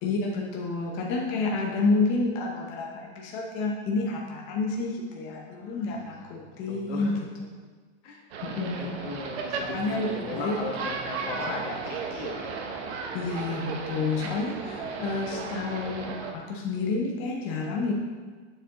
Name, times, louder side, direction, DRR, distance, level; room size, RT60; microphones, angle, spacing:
voice 1, 0.0-7.2 7.5-7.6 8.4-9.0 9.6-10.6 13.1-17.9, left 3 dB, 35° left, -1 dB, 0.8 m, -29 dB
voice 2, 5.5-6.2 6.7-7.2 8.0-8.2 8.7-12.8, left 3 dB, 75° left, 0 dB, 1.4 m, -38 dB
sound 1, 8.3-16.3, right 5 dB, 60° right, 0.9 m, -35 dB
7.4 x 4.8 x 3.0 m, 1.4 s
supercardioid pair, 155°, 36 cm